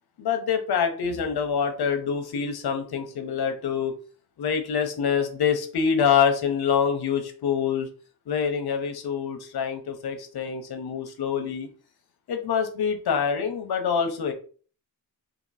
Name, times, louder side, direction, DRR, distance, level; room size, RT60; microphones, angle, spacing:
voice 1, 0.2-3.9 4.4-7.9 8.3-11.7 12.3-14.3, left 7 dB, 70° left, 6 dB, 0.8 m, -25 dB
2.9 x 2.6 x 4.0 m, 0.41 s
wide cardioid pair, 170°, 40 cm